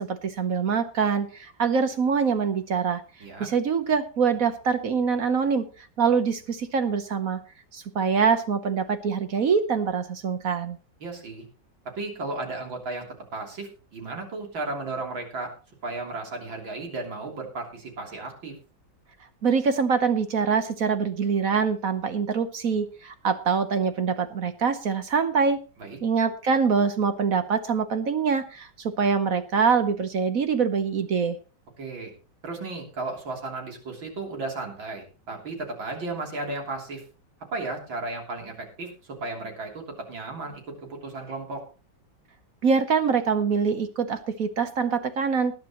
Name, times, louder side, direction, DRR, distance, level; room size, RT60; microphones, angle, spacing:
voice 1, 0.0-3.0 3.4-7.4 7.7-10.8 19.4-25.6 26.0-31.4 42.6-45.5, right 6 dB, 55° right, 10 dB, 1.2 m, -24 dB
voice 2, 11.0-11.5 12.0-13.1 13.3-15.5 15.8-18.5 25.8-26.0 31.8-32.1 32.4-37.0 37.5-39.8 40.1-41.6, right 3 dB, 80° right, 2 dB, 3.9 m, -34 dB
20.0 x 10.5 x 3.0 m, 0.33 s
omnidirectional pair, 2.1 m